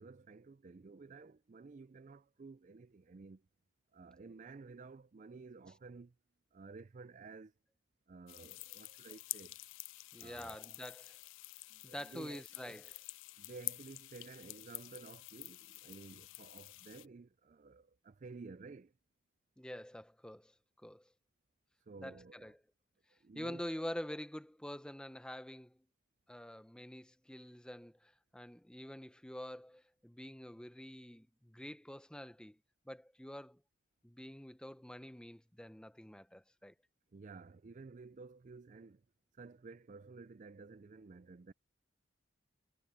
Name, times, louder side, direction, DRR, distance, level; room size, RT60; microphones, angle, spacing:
voice 1, 0.0-3.4 3.9-6.1 6.5-7.5 8.1-9.6 10.2-10.7 11.7-12.8 13.4-18.9 21.9-22.5 23.1-23.6 37.1-39.0 39.3-41.5, right 4 dB, 40° right, 0.4 m, -53 dB
sound 1, 8.3-17.1, left 21 dB, 75° left, 0.3 m, -48 dB
voice 2, 10.1-11.2 11.8-12.9 19.6-21.1 22.0-22.6 23.3-25.8 26.3-32.6 32.9-33.6 34.0-36.7, equal, 5° left, 0.7 m, -47 dB
head